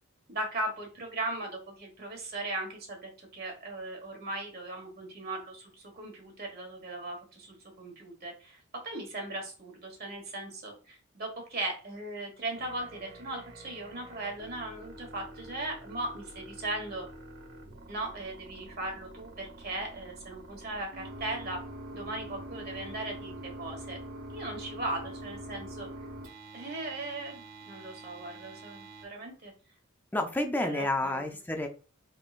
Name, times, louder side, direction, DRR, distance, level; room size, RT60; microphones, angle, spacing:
voice 1, 0.3-17.1 17.9-21.6 21.9-24.0 24.3-25.9 26.5-29.5 30.7-31.2, right 2 dB, 50° right, 1 dB, 1.4 m, -38 dB
sound 1, 12.5-29.0, right 1 dB, 80° right, 1.6 m, -46 dB
voice 2, 30.1-31.7, left 1 dB, 10° left, 5 dB, 0.5 m, -30 dB
3.8 x 3.6 x 2.4 m, 0.36 s
head